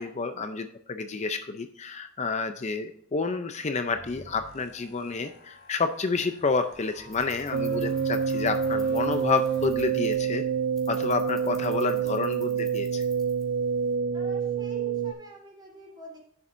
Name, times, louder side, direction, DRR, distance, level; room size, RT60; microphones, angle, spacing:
voice 1, 0.0-10.4 10.9-13.0, left 4 dB, 35° left, 8 dB, 0.5 m, -29 dB
sound 1, 3.8-10.3, left 1 dB, 55° left, 3.0 m, -50 dB
sound 2, 6.7-14.0, left 1 dB, ahead, 1.9 m, -52 dB
sound 3, 7.5-15.1, right 7 dB, 60° right, 0.4 m, -27 dB
voice 2, 14.1-16.2, equal, 20° right, -1 dB, 3.2 m, -46 dB
10.5 x 7.2 x 2.6 m, 0.68 s
head